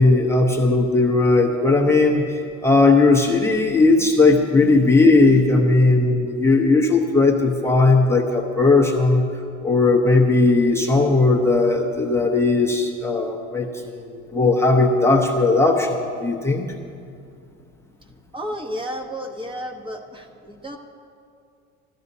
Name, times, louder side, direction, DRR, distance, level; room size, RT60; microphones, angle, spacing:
voice 1, 0.0-9.3 9.6-16.7, left 3 dB, 5° left, -1 dB, 0.8 m, -17 dB
voice 2, 18.3-20.8, equal, 15° right, 4 dB, 1.0 m, -32 dB
15.0 x 13.5 x 2.7 m, 2.5 s
supercardioid pair, 115°, 35 cm